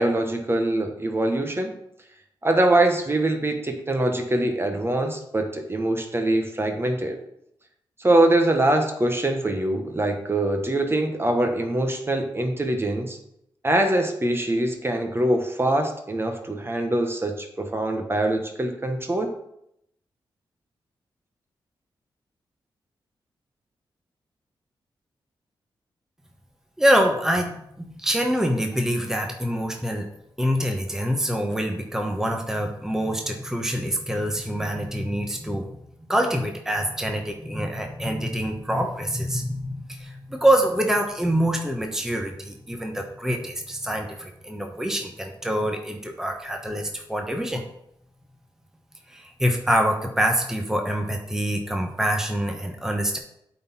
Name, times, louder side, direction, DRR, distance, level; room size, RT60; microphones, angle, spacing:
voice 1, 0.0-1.7 2.4-7.2 8.0-13.2 13.6-19.3, right 1 dB, 25° right, 5 dB, 1.2 m, -23 dB
voice 2, 26.8-27.5 27.8-30.1 30.4-35.7 36.1-47.6 49.1-53.2, equal, 5° right, 3 dB, 1.1 m, -25 dB
8.4 x 4.1 x 4.3 m, 0.77 s
cardioid pair, 60°, 9 cm